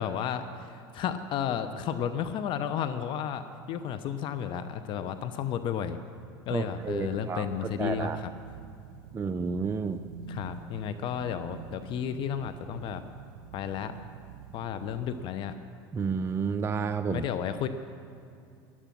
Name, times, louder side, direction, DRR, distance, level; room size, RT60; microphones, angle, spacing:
voice 1, 0.0-6.0 6.5-8.3 10.3-13.0 13.5-13.9 14.5-15.6 17.1-17.7, left 8 dB, 50° left, 11 dB, 0.7 m, -32 dB
voice 2, 6.5-8.2 9.1-10.0 15.9-17.2, right 5 dB, 20° right, 9 dB, 0.5 m, -31 dB
sound 1, 6.8-15.3, right 8 dB, 70° right, 0.8 m, -47 dB
12.0 x 11.5 x 6.0 m, 2.5 s
supercardioid pair, 100°, 11 cm